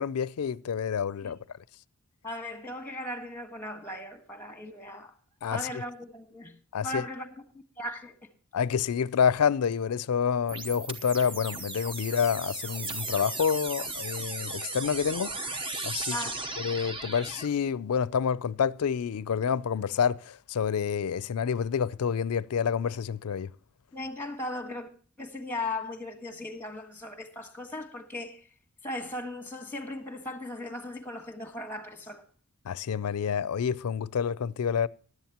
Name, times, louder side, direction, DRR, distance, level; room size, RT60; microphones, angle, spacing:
voice 1, 0.0-1.4 5.4-5.6 6.7-7.0 8.5-15.3 15.8-16.2 16.6-23.5 32.7-34.9, left 7 dB, 80° left, 0.4 m, -28 dB
voice 2, 2.2-5.1 5.5-6.6 6.8-8.3 16.1-16.4 23.9-24.9 25.2-28.4 28.8-32.2, left 1 dB, 10° left, 1.4 m, -38 dB
sound 1, 10.5-17.5, right 3 dB, 25° right, 0.9 m, -36 dB
16.5 x 11.0 x 2.9 m
head